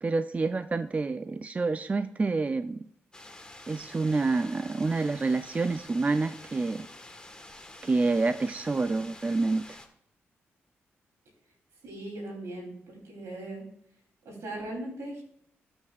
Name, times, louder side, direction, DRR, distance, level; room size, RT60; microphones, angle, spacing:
voice 1, 0.0-2.8 3.7-6.9 7.8-9.7, right 3 dB, 30° right, 11 dB, 0.4 m, -28 dB
sound 1, 3.1-9.9, left 1 dB, 15° left, 1.4 m, -48 dB
voice 2, 11.8-13.6 14.2-15.2, right 1 dB, 80° right, 0 dB, 3.2 m, -39 dB
15.5 x 5.9 x 2.4 m, 0.67 s
supercardioid pair, 55°, 5 cm